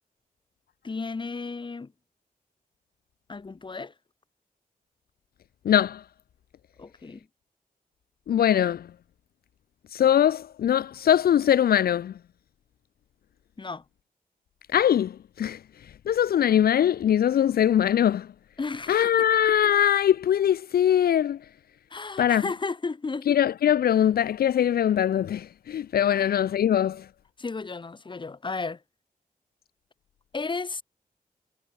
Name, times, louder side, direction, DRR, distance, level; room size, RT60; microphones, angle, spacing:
voice 1, 0.8-1.9 3.3-3.9 6.8-7.3 13.6-13.8 18.6-19.3 21.9-23.3 26.1-26.3 27.4-28.8 30.3-30.8, left 4 dB, 30° left, 1.6 m, -34 dB
voice 2, 5.7-6.0 8.3-8.9 9.9-12.1 14.7-15.6 16.1-18.3 18.9-21.4 22.2-22.4 23.3-27.1, left 10 dB, 80° left, 0.4 m, -22 dB
wide cardioid pair, 170°, 16 cm